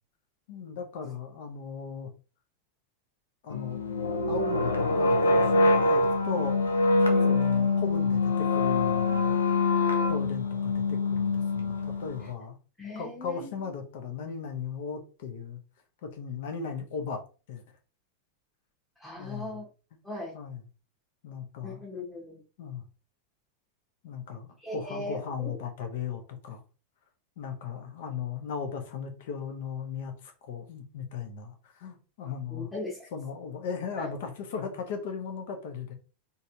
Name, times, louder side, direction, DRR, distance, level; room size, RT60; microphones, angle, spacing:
voice 1, 0.5-2.1 3.4-3.8 4.3-6.6 7.3-9.4 10.1-12.6 12.9-15.6 16.0-17.2 17.5-17.6 19.2-19.6 20.3-20.6 21.2-21.8 22.6-22.8 24.0-26.6 27.4-32.7 33.1-35.9, left 6 dB, 55° left, 5 dB, 1.0 m, -37 dB
sound 1, 3.5-12.3, left 3 dB, 75° left, 0.7 m, -25 dB
voice 2, 12.8-13.7 19.0-19.6 20.0-20.4 21.6-22.4 24.6-25.6 32.5-33.1 34.0-34.1, left 2 dB, 5° left, -4 dB, 1.2 m, -39 dB
4.0 x 3.5 x 2.7 m, 0.34 s
figure-of-eight pair, 90°, 0 cm